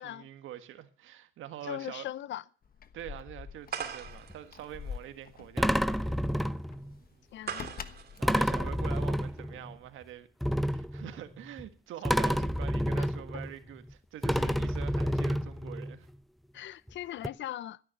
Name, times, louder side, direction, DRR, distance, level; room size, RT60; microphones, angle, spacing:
voice 1, 0.0-2.1 2.9-6.2 8.2-10.3 10.7-16.1, right 12 dB, 85° right, 1.6 m, -45 dB
voice 2, 1.6-2.4 7.3-7.7 12.9-13.1 14.5-14.6 16.5-17.8, left 12 dB, 70° left, 0.6 m, -39 dB
Keys jangling, 2.6-9.6, left 7 dB, 45° left, 1.2 m, -46 dB
sound 1, 3.7-9.3, right 7 dB, 50° right, 2.6 m, -43 dB
sound 2, 4.1-4.3 5.6-6.9 8.2-9.8 10.4-11.7 12.0-13.9 14.2-16.0 16.9-17.0 17.2-17.3, equal, ahead, 0.6 m, -29 dB
16.0 x 10.0 x 6.4 m
cardioid pair, 90°, 20 cm